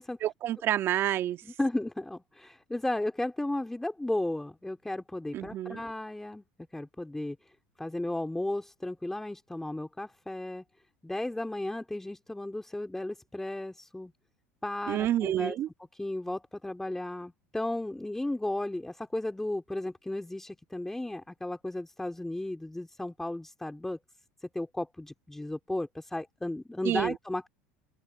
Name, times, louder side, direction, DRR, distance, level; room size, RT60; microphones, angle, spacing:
voice 1, 0.2-1.4 5.3-5.8 14.9-15.7 26.8-27.1, right 12 dB, 50° right, 1.9 m, -28 dB
voice 2, 1.4-6.4 6.7-7.5 7.8-10.6 11.0-14.1 14.6-15.6 15.9-24.0 24.4-27.5, left 1 dB, 5° left, 3.1 m, -34 dB
open air
hypercardioid pair, 90°, 5 cm